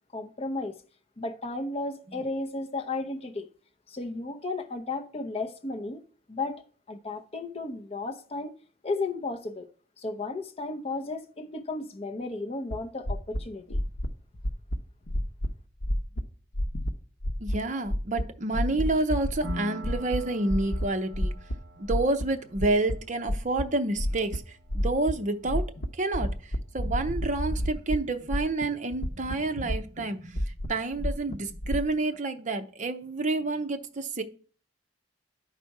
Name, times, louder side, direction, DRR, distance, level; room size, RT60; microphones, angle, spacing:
voice 1, 0.1-0.8 1.2-3.5 3.9-6.0 6.3-8.5 8.8-9.7 10.0-13.8, left 3 dB, 30° left, 0.7 m, -34 dB
sound 1, 12.7-12.8 13.1-13.4 13.7-14.1 14.4-14.8 15.1-15.5 15.8-16.2 16.5-16.9 17.2-17.6 17.9-18.2 18.5-19.6 19.8-20.2 20.5-20.9 21.1-21.6 21.9-22.9 23.3-23.6 24.0-24.4 24.7-25.1 25.4-25.9 26.1-28.0 28.3-28.6 28.9-30.0 30.4-31.8, equal, 75° left, 0.9 m, -29 dB
voice 2, 17.4-21.3 21.8-24.4 24.7-25.7 25.9-34.2, right 2 dB, 40° right, 0.7 m, -29 dB
Piano, 19.4-26.8, equal, 60° right, 1.0 m, -46 dB
11.0 x 4.1 x 4.7 m
head